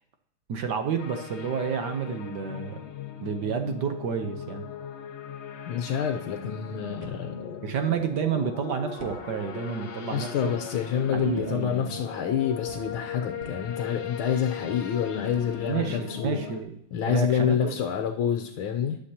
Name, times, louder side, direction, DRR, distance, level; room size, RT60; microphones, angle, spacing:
voice 1, 0.5-2.8 3.2-4.6 7.6-10.5 11.1-11.9 15.7-16.8 17.0-17.8, right 6 dB, 65° right, 6 dB, 1.3 m, -30 dB
sound 1, 1.0-16.6, left 7 dB, 55° left, 0.7 m, -39 dB
voice 2, 5.7-8.0 10.1-16.4 16.9-19.0, left 8 dB, 80° left, 5 dB, 1.6 m, -28 dB
sound 2, 6.8-16.9, right 2 dB, 45° right, 1.6 m, -51 dB
19.0 x 6.6 x 2.8 m, 0.80 s
omnidirectional pair, 2.2 m